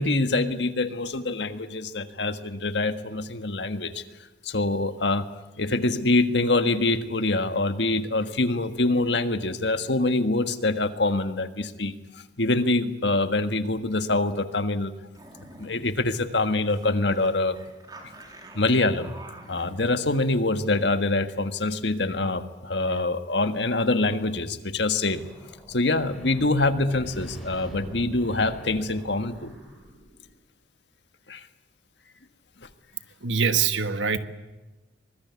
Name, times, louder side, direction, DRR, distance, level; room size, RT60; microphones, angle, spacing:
voice 1, 0.0-4.0 4.4-5.2 5.6-11.9 12.4-14.9 15.6-17.6 18.5-19.1 19.5-25.3 25.7-29.5 31.3-31.4, left 2 dB, 70° left, 9 dB, 1.6 m, -25 dB
sound 1, 15.1-15.9 16.3-16.4 16.7-16.9 17.1-19.8, right 1 dB, 20° right, 3.6 m, -46 dB
sound 2, 24.9-30.3, equal, ahead, 7.9 m, -44 dB
voice 2, 33.2-34.2, right 6 dB, 85° right, 10 dB, 1.6 m, -23 dB
24.0 x 21.0 x 9.7 m, 1.1 s
head